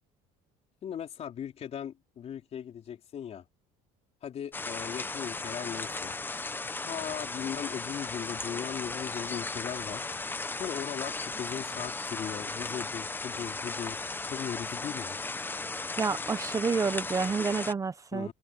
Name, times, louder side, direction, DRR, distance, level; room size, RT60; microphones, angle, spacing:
voice 1, 0.8-3.4 4.2-6.1 6.8-10.1 10.6-15.2 18.1-18.3, left 9 dB, 45° left, 4.0 m, -38 dB
sound 1, 4.5-17.7, left 3 dB, 15° left, 1.0 m, -36 dB
voice 2, 16.0-18.3, right 5 dB, 20° right, 0.9 m, -29 dB
open air
cardioid pair, 120°, 16 cm